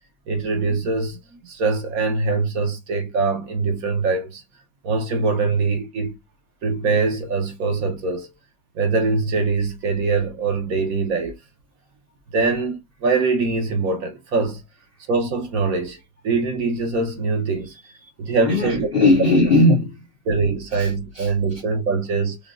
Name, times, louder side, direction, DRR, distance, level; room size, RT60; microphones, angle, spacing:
voice 1, 0.3-1.2 1.4-4.4 4.8-6.2 6.6-8.3 8.7-11.4 12.3-14.6 15.1-16.0 16.2-17.8 18.2-18.9 20.3-22.4, right 4 dB, 55° right, 1.2 m, -23 dB
voice 2, 18.4-20.1 20.7-21.3, left 2 dB, 55° left, 0.6 m, -18 dB
5.1 x 2.7 x 2.5 m
omnidirectional pair, 1.9 m